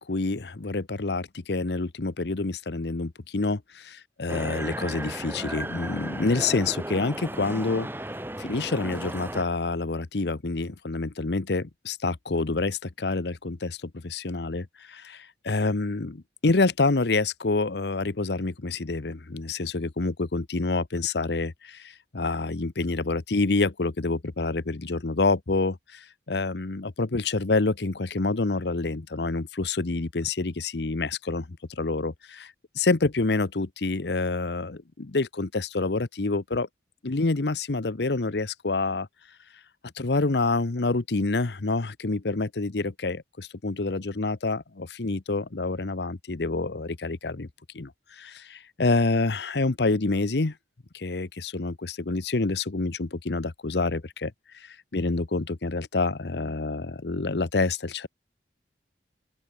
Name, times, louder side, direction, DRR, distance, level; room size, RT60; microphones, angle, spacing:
voice 1, 0.0-7.9 8.4-36.7 37.0-39.1 40.0-47.5 47.7-50.5 50.9-58.1, left 3 dB, 75° left, 0.9 m, -27 dB
sound 1, 4.3-9.4, right 1 dB, 10° right, 4.6 m, -35 dB
open air
head